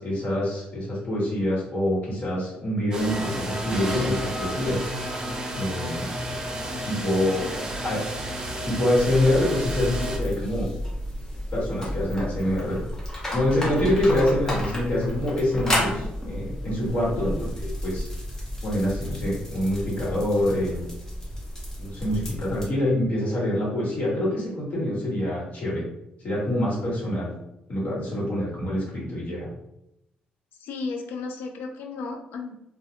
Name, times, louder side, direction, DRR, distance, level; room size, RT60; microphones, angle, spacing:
voice 1, 0.0-4.8 5.5-6.1 6.8-7.5 7.8-8.0 8.6-10.7 11.5-12.8 13.3-18.1 18.6-20.8 21.8-25.8 26.2-27.3 27.7-29.5, left 1 dB, 50° left, -6 dB, 1.2 m, -25 dB
sound 1, 2.9-10.2, right 1 dB, 20° right, 0.4 m, -32 dB
voice 2, 7.5-7.8 13.8-14.0 16.8-17.1 30.6-32.6, left 4 dB, 85° left, 3 dB, 0.4 m, -35 dB
sound 2, 8.9-22.7, equal, 15° left, 0.7 m, -32 dB
2.2 x 2.1 x 2.7 m, 0.83 s
cardioid pair, 145°, 3 cm